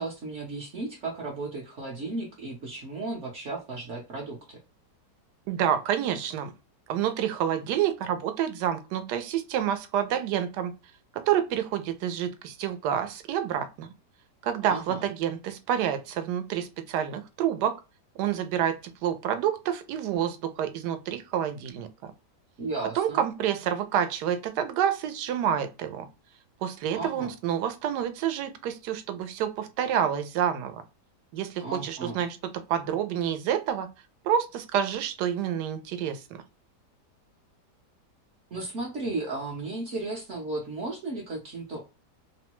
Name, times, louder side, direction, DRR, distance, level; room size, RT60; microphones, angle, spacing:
voice 1, 0.0-4.6 14.7-15.0 22.6-23.2 26.9-27.3 31.6-32.2 38.5-41.9, right 3 dB, 60° right, 0.9 m, -34 dB
voice 2, 5.5-6.5 6.9-10.7 11.3-13.9 14.4-17.8 18.2-22.1 22.9-26.1 26.6-30.8 31.3-33.9 34.2-36.4, right 9 dB, 80° right, 1.1 m, -28 dB
2.9 x 2.1 x 2.9 m
omnidirectional pair, 1.8 m